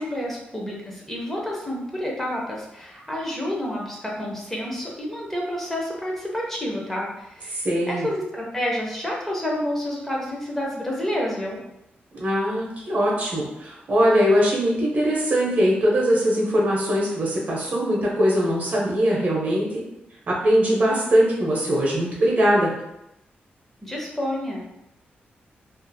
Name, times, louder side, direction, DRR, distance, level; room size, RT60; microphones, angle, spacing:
voice 1, 0.0-11.6 23.8-24.7, left 1 dB, 10° left, -3 dB, 0.6 m, -29 dB
voice 2, 7.5-8.1 12.1-19.7 20.3-22.7, equal, 45° right, -4 dB, 0.7 m, -21 dB
2.5 x 2.4 x 2.6 m, 0.86 s
wide cardioid pair, 135°, 4 cm